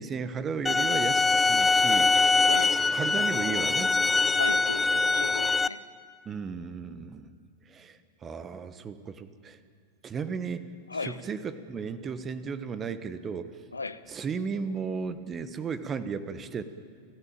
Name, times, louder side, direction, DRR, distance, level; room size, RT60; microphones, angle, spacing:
voice 1, 0.0-2.1 2.9-3.9 6.2-7.4 7.7-9.6 10.0-10.7 11.0-13.5 14.1-16.6, right 5 dB, 25° right, 1.3 m, -35 dB
sound 1, 0.7-5.7, left 3 dB, 10° left, 0.5 m, -23 dB
voice 2, 2.5-2.8 4.3-5.9 10.9-11.2 13.7-14.0, left 4 dB, 80° left, 0.8 m, -36 dB
29.5 x 15.0 x 9.0 m
figure-of-eight pair, 90°, 0 cm